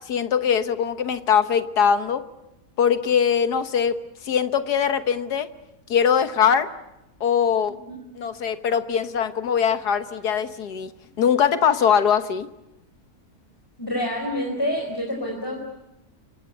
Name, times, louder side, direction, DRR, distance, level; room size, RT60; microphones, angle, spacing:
voice 1, 0.1-2.2 2.8-4.0 4.2-5.5 5.9-6.7 7.2-7.8 8.2-10.9 11.2-12.5, left 7 dB, 75° left, 10 dB, 1.7 m, -21 dB
voice 2, 13.8-15.6, left 1 dB, 15° left, 1 dB, 4.8 m, -27 dB
29.0 x 24.0 x 8.0 m, 0.92 s
omnidirectional pair, 1.7 m